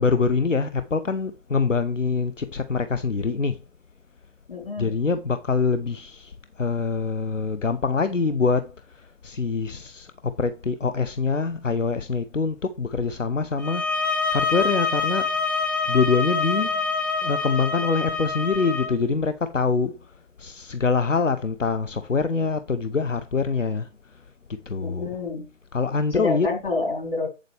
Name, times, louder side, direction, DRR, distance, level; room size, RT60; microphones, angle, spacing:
voice 1, 0.0-3.6 4.8-8.7 9.2-14.0 14.3-15.3 15.9-16.8 17.2-20.0 20.4-23.9 24.7-25.2 25.7-26.5, left 4 dB, 75° left, 0.9 m, -24 dB
voice 2, 4.5-4.9 24.8-25.5 26.1-27.3, left 3 dB, 45° left, 3.7 m, -28 dB
sound 1, 13.6-18.9, left 4 dB, 15° left, 0.8 m, -26 dB
8.3 x 7.5 x 3.4 m
figure-of-eight pair, 150°, 38 cm